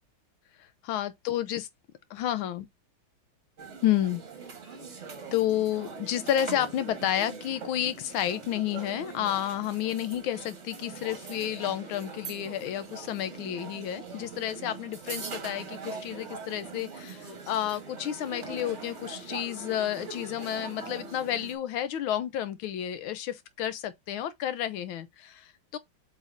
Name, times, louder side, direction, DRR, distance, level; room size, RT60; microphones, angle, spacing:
voice 1, 0.8-1.7 2.1-2.7 3.8-4.2 5.3-25.8, left 11 dB, 85° left, 1.5 m, -31 dB
sound 1, 3.6-21.5, right 4 dB, 40° right, 1.5 m, -42 dB
7.6 x 5.1 x 2.6 m
omnidirectional pair, 2.2 m